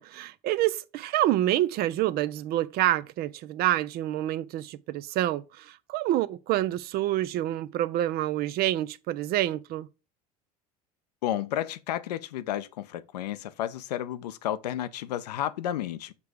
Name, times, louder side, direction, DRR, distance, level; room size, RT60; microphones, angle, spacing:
voice 1, 0.0-9.9, right 14 dB, 50° right, 0.5 m, -27 dB
voice 2, 11.2-16.1, left 12 dB, 80° left, 0.6 m, -32 dB
6.8 x 3.4 x 4.7 m
hypercardioid pair, 75°, 20 cm